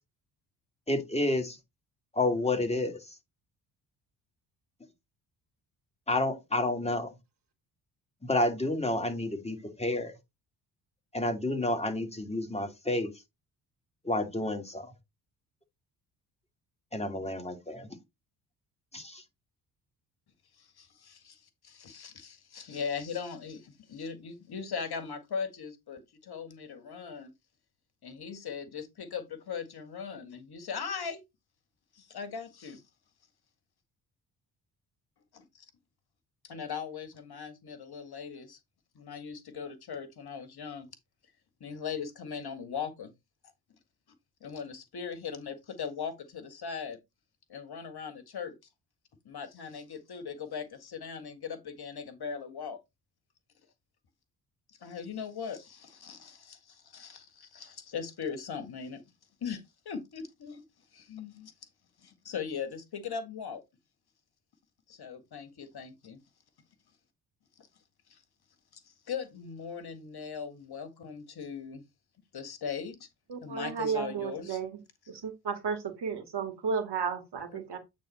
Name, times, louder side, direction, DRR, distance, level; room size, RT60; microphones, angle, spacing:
voice 1, 0.9-1.6 2.1-3.0 6.1-7.1 8.2-10.1 11.1-13.1 14.0-14.9 16.9-17.9 18.9-19.2, left 2 dB, 15° left, 2.4 m, -30 dB
voice 2, 20.5-27.3 28.0-31.2 31.9-32.8 35.3-35.7 36.4-38.6 39.0-41.0 41.6-43.1 44.4-47.0 47.5-48.6 49.3-52.8 54.7-59.0 59.4-60.6 60.9-61.5 62.0-63.6 64.9-66.2 67.6-67.7 68.1-68.2 68.7-71.8 72.3-73.1 73.4-74.6, left 6 dB, 50° left, 1.8 m, -39 dB
voice 3, 73.3-74.7 75.1-77.8, right 6 dB, 50° right, 2.3 m, -33 dB
8.6 x 4.0 x 4.3 m
hypercardioid pair, 45°, 49 cm